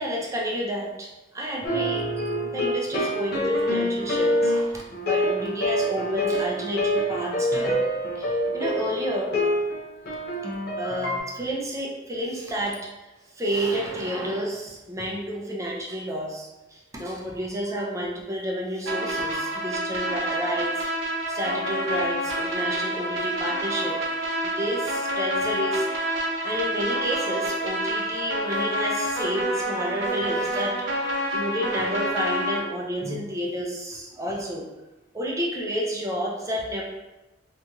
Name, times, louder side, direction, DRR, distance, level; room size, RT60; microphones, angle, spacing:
voice 1, 0.0-2.1 2.4-7.8 8.2-9.4 10.8-20.9 21.3-24.0 24.4-34.7 35.1-36.8, equal, 15° right, -2 dB, 0.4 m, -30 dB
sound 1, 1.6-11.2, equal, 55° left, 0.6 m, -26 dB
sound 2, 18.9-32.6, right 1 dB, 80° right, 0.6 m, -28 dB
2.8 x 2.7 x 2.3 m, 1.1 s
head